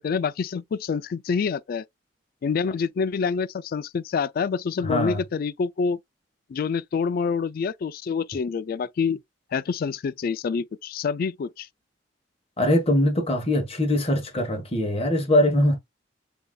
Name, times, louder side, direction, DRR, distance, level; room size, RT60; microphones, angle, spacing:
voice 1, 0.0-1.8 2.4-6.0 6.5-9.2 9.5-11.7, left 5 dB, 50° left, 0.3 m, -27 dB
voice 2, 4.8-5.2 12.6-15.8, left 1 dB, 35° left, 1.3 m, -22 dB
6.9 x 2.7 x 2.2 m
head